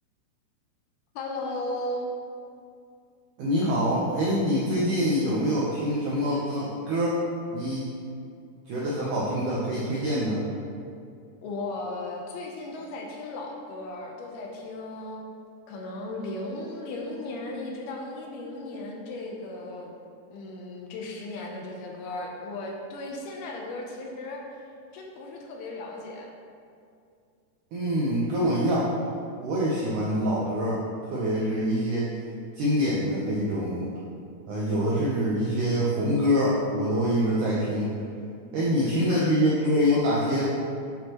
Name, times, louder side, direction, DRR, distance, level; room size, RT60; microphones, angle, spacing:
voice 1, 1.2-2.1 11.4-15.3 15.7-19.9 20.3-24.4 24.9-26.3 38.7-39.4, left 2 dB, 80° left, 0 dB, 2.5 m, -36 dB
voice 2, 3.4-7.2 7.5-7.9 8.7-10.4 27.7-28.9 29.4-30.8 31.1-32.1 32.5-33.9 34.5-37.9 38.5-40.5, equal, 80° right, -6 dB, 1.8 m, -25 dB
9.4 x 5.6 x 2.9 m, 2.4 s
omnidirectional pair, 4.7 m